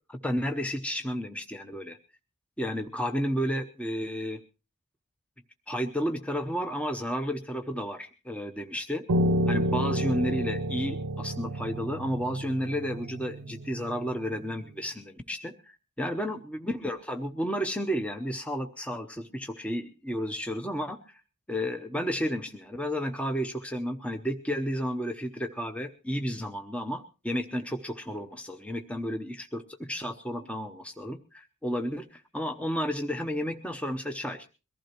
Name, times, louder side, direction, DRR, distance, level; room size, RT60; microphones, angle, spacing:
voice 1, 0.1-2.0 2.6-4.4 5.7-9.0 9.5-21.2 21.5-34.5, equal, 5° left, 6 dB, 0.8 m, -32 dB
Piano, 9.1-14.4, equal, 80° right, 0.8 m, -30 dB
22.5 x 15.0 x 3.0 m, 0.33 s
head